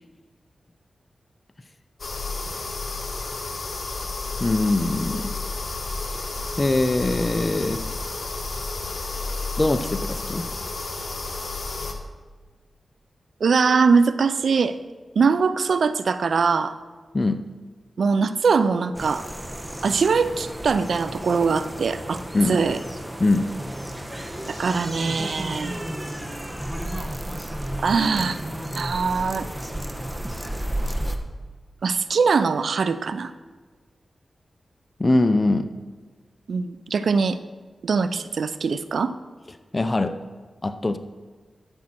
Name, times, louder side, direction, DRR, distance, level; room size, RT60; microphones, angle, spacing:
sound 1, 2.0-11.9, left 3 dB, 60° left, 1.6 m, -31 dB
voice 1, 4.4-5.3 6.6-7.8 9.6-10.5 17.1-17.4 22.3-22.6 23.2-23.5 35.0-35.7 39.7-40.1 40.6-41.0, left 2 dB, 35° left, 10 dB, 0.6 m, -22 dB
voice 2, 13.4-14.8 15.2-16.8 18.0-19.3 19.8-22.8 24.5-25.8 27.8-28.4 28.7-29.5 31.8-33.3 36.5-37.4 37.8-39.1, right 5 dB, 75° right, 12 dB, 0.4 m, -22 dB
sound 2, 18.9-31.2, right 1 dB, 15° right, 1.2 m, -32 dB
12.5 x 7.4 x 4.5 m, 1.4 s
cardioid pair, 45°, 0 cm